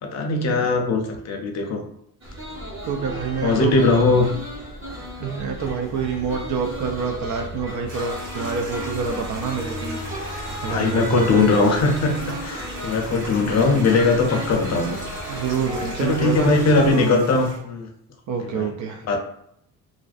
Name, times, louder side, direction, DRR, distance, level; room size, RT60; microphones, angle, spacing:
voice 1, 0.0-1.8 3.4-4.3 10.7-15.0 16.0-17.9 18.4-18.7 19.1-19.2, left 3 dB, 40° left, 2 dB, 0.6 m, -20 dB
sound 1, 2.2-16.9, equal, 30° right, 1.1 m, -34 dB
voice 2, 2.9-3.8 5.2-10.0 10.6-11.7 13.4-13.9 15.3-16.5 16.9-17.2 18.3-19.0, right 6 dB, 50° right, 4 dB, 0.4 m, -27 dB
Stream, 7.9-17.6, right 1 dB, 75° right, 1.4 m, -38 dB
2.4 x 2.1 x 2.4 m, 0.73 s
cardioid pair, 95°, 40 cm